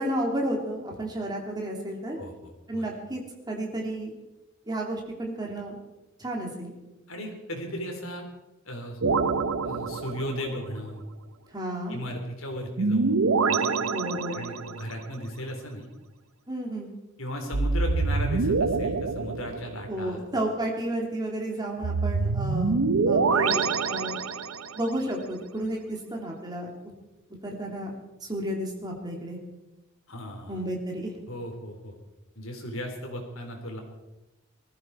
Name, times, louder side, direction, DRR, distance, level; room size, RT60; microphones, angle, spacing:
voice 1, 0.0-2.2 2.7-3.2 3.5-4.1 4.7-5.8 6.2-6.7 11.5-12.0 13.9-14.5 16.5-16.9 19.9-22.8 23.1-24.2 24.7-26.7 27.4-27.9 28.2-29.4 30.5-31.2, right 1 dB, 20° right, -1 dB, 2.9 m, -32 dB
voice 2, 2.2-2.8 7.1-8.3 8.7-9.0 9.6-11.0 11.9-13.7 14.3-15.9 17.2-20.2 30.1-30.6 31.3-31.9 32.4-33.8, equal, 75° left, 3 dB, 3.6 m, -36 dB
sound 1, 9.0-10.6 12.8-14.8 17.5-20.0 21.8-24.8, right 4 dB, 80° right, 0.7 m, -26 dB
20.0 x 14.5 x 4.7 m, 1.0 s
head